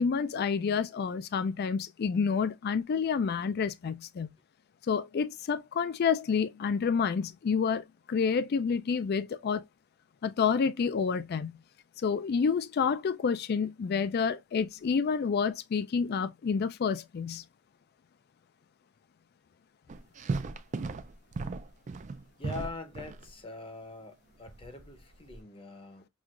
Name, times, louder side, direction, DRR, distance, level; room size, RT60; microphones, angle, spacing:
voice 1, 0.0-4.3 4.9-9.6 10.2-11.5 12.0-17.4, left 6 dB, 50° left, 0.3 m, -29 dB
sound 1, 19.9-23.3 24.5-25.4, right 3 dB, 35° right, 0.4 m, -36 dB
voice 2, 22.4-26.1, left 3 dB, 25° left, 0.7 m, -43 dB
6.1 x 2.4 x 2.3 m
head